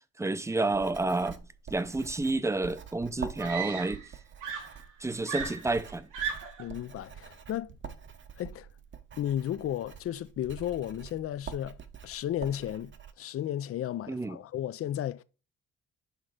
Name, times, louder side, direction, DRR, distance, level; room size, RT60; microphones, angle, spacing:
voice 1, 0.2-1.4 1.7-4.0 5.0-6.1 14.1-14.4, right 2 dB, 10° right, 0.5 m, -30 dB
Writing, 0.7-13.1, right 7 dB, 40° right, 0.9 m, -46 dB
Screaming, 3.4-4.1 4.4-6.7 7.7-8.0, right 7 dB, 85° right, 1.5 m, -37 dB
voice 2, 6.6-7.7 8.4-8.7 9.2-11.8 12.0-15.2, left 11 dB, 50° left, 0.5 m, -34 dB
6.4 x 3.8 x 4.8 m
cardioid pair, 90°, 30 cm